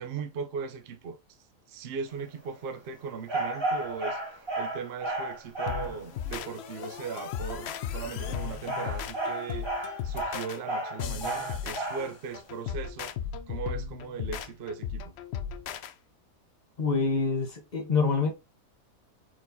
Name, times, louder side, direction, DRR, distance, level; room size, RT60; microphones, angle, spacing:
voice 1, 0.0-1.4 1.7-13.1 13.5-15.1, right 6 dB, 55° right, 0.8 m, -38 dB
sound 1, 3.3-6.0 8.1-12.1, right 2 dB, 20° right, 1.2 m, -33 dB
sound 2, 5.7-15.9, left 8 dB, 65° left, 0.7 m, -36 dB
voice 2, 16.8-18.3, left 4 dB, 35° left, 1.1 m, -26 dB
4.5 x 4.3 x 2.7 m
omnidirectional pair, 1.4 m